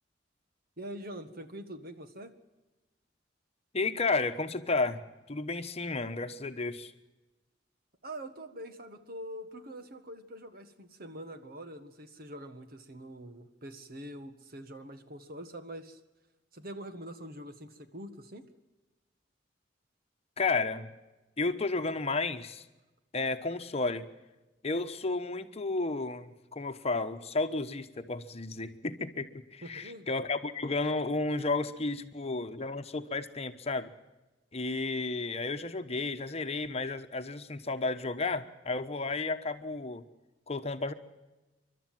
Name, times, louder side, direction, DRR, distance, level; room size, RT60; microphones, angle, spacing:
voice 1, 0.8-2.3 8.0-16.0 16.5-18.4 29.6-30.1, right 1 dB, 55° right, 9 dB, 1.7 m, -44 dB
voice 2, 3.7-5.0 5.3-6.9 20.4-20.9 21.4-22.6 23.1-24.0 24.6-33.9 34.5-40.0 40.5-40.9, left 3 dB, 35° left, 8 dB, 1.1 m, -32 dB
29.0 x 12.5 x 7.7 m, 1.1 s
head